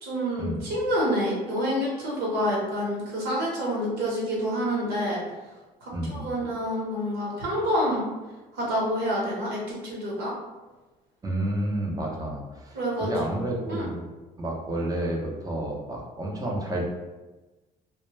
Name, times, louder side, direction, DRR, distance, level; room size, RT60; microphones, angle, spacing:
voice 1, 0.0-5.2 5.8-8.1 8.5-10.3 12.7-13.1 13.7-13.9, equal, 75° right, -4 dB, 1.0 m, -27 dB
voice 2, 5.9-6.3 11.2-14.1 14.4-16.9, right 1 dB, 20° right, -1 dB, 0.6 m, -30 dB
2.1 x 2.1 x 3.1 m, 1.2 s
cardioid pair, 110°, 17 cm